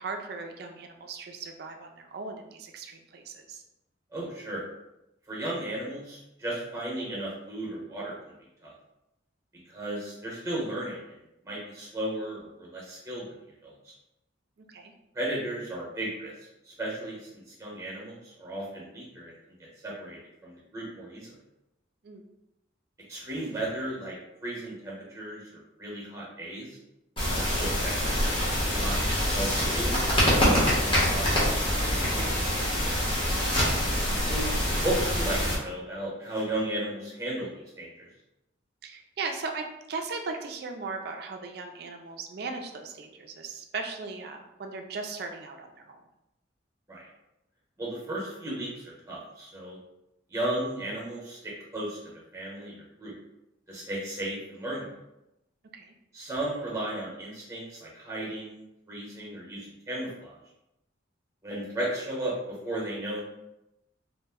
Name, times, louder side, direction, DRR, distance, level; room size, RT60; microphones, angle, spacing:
voice 1, 0.0-3.6 14.6-14.9 22.0-22.2 33.3-33.8 38.8-46.0 55.7-55.9, right 4 dB, 55° right, 4 dB, 0.3 m, -38 dB
voice 2, 4.1-4.6 5.3-8.1 8.6-8.7 9.7-11.2 11.4-13.9 15.1-16.3 16.6-21.3 23.1-24.2 24.4-26.8 27.3-28.3 28.7-29.0 29.3-32.5 34.2-34.5 34.8-38.1 46.9-47.1 47.8-49.8 50.3-52.0 52.3-53.1 53.7-54.9 56.1-60.4 61.4-63.2, right 1 dB, 15° right, -4 dB, 0.8 m, -35 dB
sound 1, 27.2-35.5, equal, 25° left, 0.8 m, -25 dB
2.5 x 2.1 x 3.5 m, 0.90 s
head